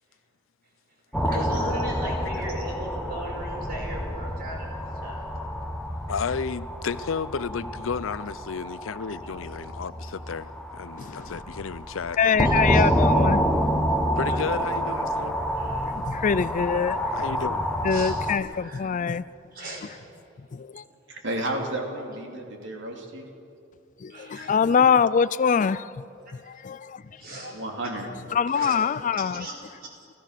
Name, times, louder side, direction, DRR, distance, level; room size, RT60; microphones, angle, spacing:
sound 1, 1.1-18.4, equal, 5° left, 1.0 m, -28 dB
voice 1, 1.3-5.2 12.4-12.8 14.3-14.4 15.6-15.9 17.9-18.1 18.5-18.9 19.5-19.9 24.1-24.6 27.0-27.6 28.5-28.8 29.2-29.6, right 1 dB, 50° right, 5.3 m, -37 dB
voice 2, 6.1-12.6 14.2-15.4 17.1-17.6, left 5 dB, 85° left, 0.6 m, -32 dB
voice 3, 12.2-13.4 15.9-17.0 17.8-19.2 20.5-20.8 24.0-26.0 26.4-27.0 28.3-29.5, left 6 dB, 40° left, 0.4 m, -24 dB
voice 4, 21.1-23.3 24.3-24.5 27.3-28.1, right 1 dB, 65° right, 2.9 m, -32 dB
29.5 x 14.0 x 6.6 m
head